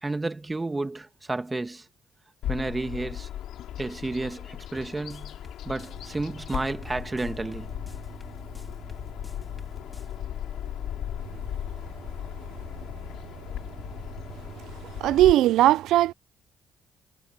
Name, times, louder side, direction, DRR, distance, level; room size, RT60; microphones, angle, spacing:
voice 1, 0.0-1.9 2.5-3.3 3.8-5.4 5.6-7.7 8.7-8.8, right 2 dB, 20° right, 1.7 m, -31 dB
Bird vocalization bird call bird song, 2.4-15.3, left 11 dB, 80° left, 2.8 m, -37 dB
sound 1, 4.8-10.1, left 1 dB, 10° left, 2.5 m, -51 dB
sound 2, 5.7-15.3, right 7 dB, 50° right, 6.1 m, -48 dB
voice 2, 15.0-16.1, right 14 dB, 85° right, 0.5 m, -18 dB
cardioid pair, 90°, 0 cm